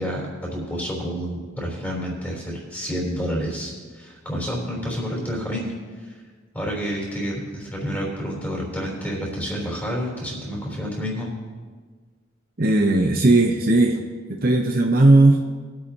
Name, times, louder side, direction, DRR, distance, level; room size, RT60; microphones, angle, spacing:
voice 1, 0.0-5.7 6.0-6.1 6.5-11.3, equal, 10° left, -3 dB, 3.5 m, -29 dB
voice 2, 12.6-14.0 14.4-15.4, right 2 dB, 45° right, 2 dB, 0.7 m, -16 dB
21.5 x 8.7 x 2.9 m, 1.5 s
head